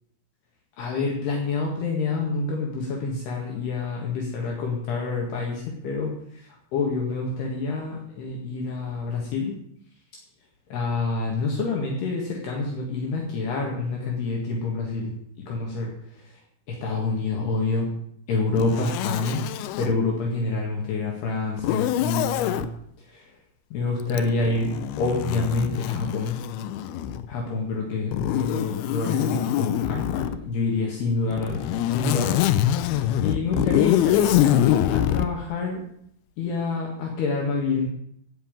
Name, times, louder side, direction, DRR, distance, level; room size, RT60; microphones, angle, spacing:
voice 1, 0.8-9.6 10.7-15.1 15.5-16.4 16.7-17.9 18.3-19.4 19.8-22.7 23.1-23.3 23.7-24.7 25.0-26.4 27.3-32.4 32.7-35.8 36.4-37.9, left 3 dB, 65° left, 0 dB, 3.7 m, -27 dB
Zipper (clothing), 18.6-20.0 21.6-22.7 24.1-27.3 28.1-30.4 31.3-35.3, left 12 dB, 85° left, 2.3 m, -24 dB
16.0 x 5.9 x 9.0 m, 0.70 s
omnidirectional pair, 5.2 m